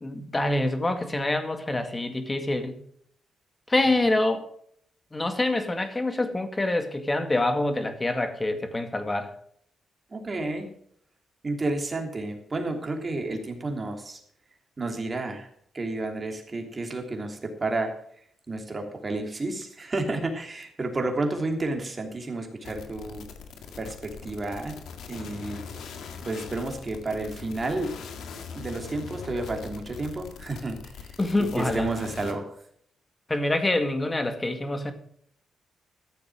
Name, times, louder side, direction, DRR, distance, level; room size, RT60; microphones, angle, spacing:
voice 1, 0.0-2.8 3.7-4.4 5.1-9.3 31.2-31.9 33.3-34.9, left 2 dB, 20° left, 7 dB, 2.0 m, -26 dB
voice 2, 10.1-10.7 11.4-14.2 14.8-15.5 15.7-18.0 18.5-23.2 23.8-24.8 25.1-25.6 26.2-27.9 28.5-31.1 31.4-32.5, right 2 dB, 30° right, 3 dB, 3.1 m, -31 dB
sound 1, 22.6-32.3, left 6 dB, 80° left, 1.9 m, -41 dB
14.0 x 7.2 x 6.4 m, 0.65 s
cardioid pair, 105°, 0 cm